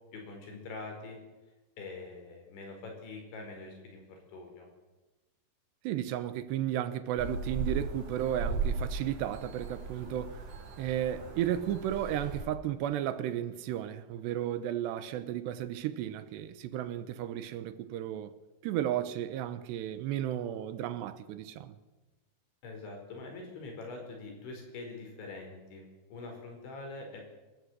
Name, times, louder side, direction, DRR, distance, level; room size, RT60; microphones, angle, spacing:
voice 1, 0.1-1.2 1.8-4.7 22.6-27.2, left 3 dB, 85° left, 7.2 m, -44 dB
voice 2, 5.8-10.5 10.8-18.3 18.6-21.8, right 11 dB, 80° right, 3.0 m, -34 dB
sound 1, 7.2-12.5, right 4 dB, 55° right, 5.3 m, -37 dB
25.5 x 14.0 x 8.1 m
omnidirectional pair, 5.1 m